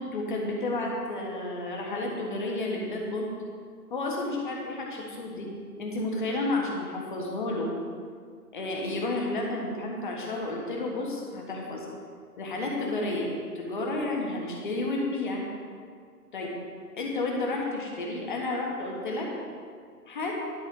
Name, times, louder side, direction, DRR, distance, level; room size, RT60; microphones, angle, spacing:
voice 1, 0.0-3.3 3.9-5.5 5.8-7.7 8.5-11.9 12.4-15.4 16.3-16.5 17.0-19.3 20.1-20.3, left 2 dB, 30° left, -1 dB, 1.6 m, -31 dB
11.5 x 4.7 x 6.5 m, 2.1 s
figure-of-eight pair, 150°, 48 cm